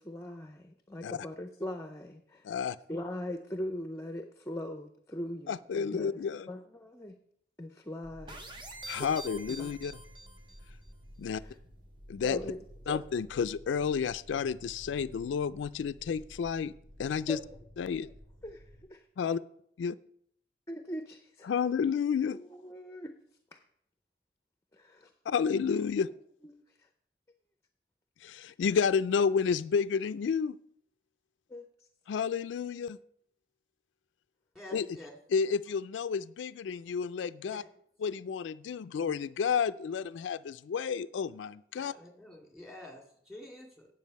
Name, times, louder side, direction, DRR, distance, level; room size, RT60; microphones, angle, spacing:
voice 1, 0.0-2.5 2.9-6.2 6.5-7.2 7.6-8.4 8.9-9.7 11.3-11.6 12.2-12.6 12.9-13.0 17.3-17.4 18.4-19.0 20.7-21.5 22.3-23.1 23.5-23.6 24.7-25.1 26.4-26.6 31.5-31.7, left 1 dB, 15° left, 6 dB, 0.5 m, -40 dB
voice 2, 2.4-2.8 5.5-6.5 8.9-10.0 11.2-11.4 12.1-12.4 12.9-16.7 17.0-17.4 17.8-18.1 19.2-19.4 19.8-19.9 21.4-22.4 25.3-26.1 28.2-30.6 32.1-33.0 34.7-34.9 35.3-37.6 38.0-41.9, left 6 dB, 90° left, 14 dB, 0.3 m, -31 dB
sound 1, 8.0-18.9, equal, 85° right, 3.0 m, -53 dB
sound 2, 8.3-10.7, right 2 dB, 25° right, 0.8 m, -46 dB
voice 3, 34.5-35.1 37.5-37.7 41.8-43.9, left 1 dB, ahead, 0 dB, 2.1 m, -48 dB
9.2 x 7.6 x 5.3 m, 0.69 s
head